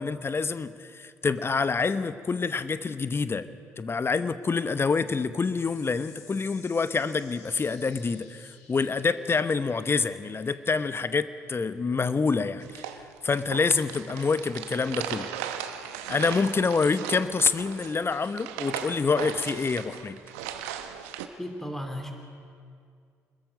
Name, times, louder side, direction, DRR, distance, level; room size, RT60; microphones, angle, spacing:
voice 1, 0.0-3.5 3.8-12.9 13.2-15.3 16.1-20.2, left 4 dB, 30° left, 13 dB, 1.0 m, -27 dB
sound 1, 5.6-12.4, left 5 dB, 80° left, 2.8 m, -55 dB
sound 2, 12.6-21.3, right 9 dB, 75° right, 1.0 m, -37 dB
voice 2, 21.4-22.1, equal, 5° left, 4 dB, 2.7 m, -34 dB
26.0 x 21.0 x 5.2 m, 2.3 s
figure-of-eight pair, 50°, 8 cm